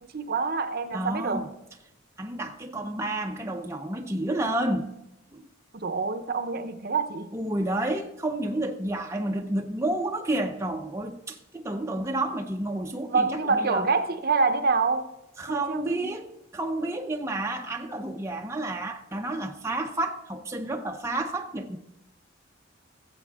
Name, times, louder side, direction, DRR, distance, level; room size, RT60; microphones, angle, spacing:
voice 1, 0.0-1.4 5.7-7.3 13.1-15.1 15.5-16.1, right 4 dB, 50° right, 0.7 m, -26 dB
voice 2, 0.9-1.5 2.2-4.9 5.3-5.5 7.3-13.9 15.4-21.8, right 1 dB, 15° right, 0.6 m, -30 dB
16.5 x 7.7 x 3.5 m
head